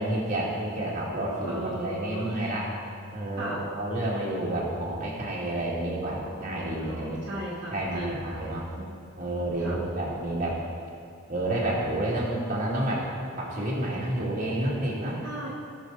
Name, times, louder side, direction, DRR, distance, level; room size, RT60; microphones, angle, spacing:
voice 1, 0.0-2.7 3.1-7.2 7.7-8.7 9.2-10.6 11.3-13.1 13.4-15.2, right 1 dB, 35° right, -5 dB, 2.2 m, -29 dB
voice 2, 1.5-2.3 3.4-3.6 6.8-8.9 9.6-9.8 15.2-15.5, right 1 dB, 50° right, -6 dB, 1.9 m, -36 dB
18.0 x 6.6 x 4.0 m, 2.4 s
head